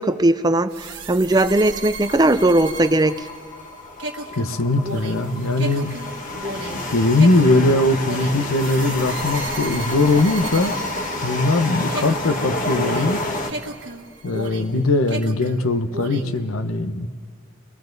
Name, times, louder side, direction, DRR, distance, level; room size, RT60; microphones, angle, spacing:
voice 1, 0.0-3.1, right 1 dB, 20° right, 11 dB, 0.5 m, -18 dB
sound 1, 0.7-11.6 11.9-14.8 15.1-16.4, right 2 dB, 60° right, 1.7 m, -34 dB
sound 2, 2.0-13.5, left 2 dB, 40° left, 1.4 m, -29 dB
voice 2, 4.4-5.9 6.9-10.7 11.2-13.2 14.2-17.1, left 2 dB, 90° left, 9 dB, 1.0 m, -20 dB
30.0 x 22.0 x 4.0 m, 2.2 s
head